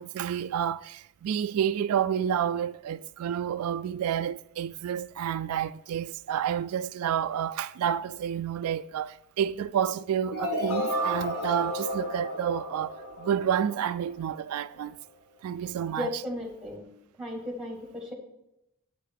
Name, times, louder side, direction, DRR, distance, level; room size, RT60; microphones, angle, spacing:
voice 1, 0.0-15.0 15.4-16.1, right 9 dB, 85° right, 0.3 m, -29 dB
sound 1, 10.3-14.2, equal, 85° left, 1.4 m, -32 dB
voice 2, 16.0-16.9 17.2-18.1, left 1 dB, ahead, 2.0 m, -35 dB
8.3 x 6.7 x 4.6 m
head